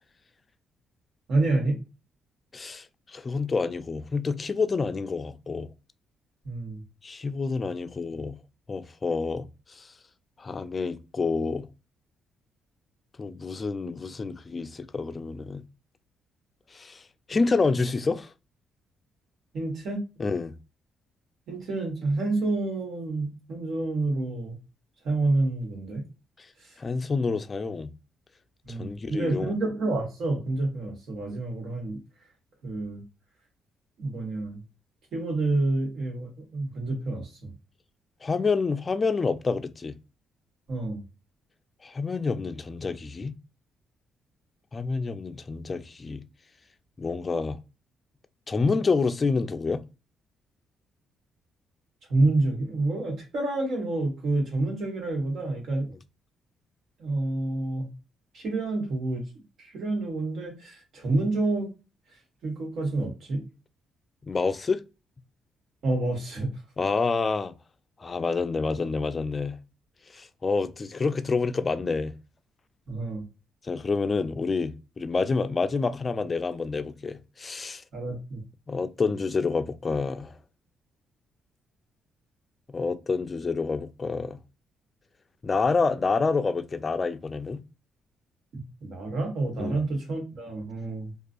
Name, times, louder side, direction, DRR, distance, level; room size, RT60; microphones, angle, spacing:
voice 1, 1.3-1.8 6.4-6.8 19.5-20.1 21.5-24.5 25.0-26.0 26.6-26.7 28.6-32.0 32.6-33.0 34.0-34.6 35.1-37.5 40.7-41.0 52.1-55.9 57.0-57.9 58.3-59.2 59.6-61.7 62.4-63.4 65.8-66.5 72.9-73.2 77.9-78.4 88.5-91.1, right 2 dB, 65° right, 1.3 m, -28 dB
voice 2, 2.5-5.7 7.0-8.4 8.7-9.9 10.4-11.7 13.2-15.6 16.7-17.0 17.3-18.3 20.2-20.5 26.8-27.9 28.7-29.5 38.2-40.0 41.8-43.3 44.7-46.2 47.0-47.6 48.5-49.8 64.2-64.8 66.8-67.5 68.0-69.6 70.1-72.2 73.6-77.8 78.7-80.3 82.7-84.4 85.4-87.6 89.6-89.8, left 4 dB, 30° left, 0.3 m, -28 dB
2.4 x 2.4 x 2.4 m
cardioid pair, 90°, 0 cm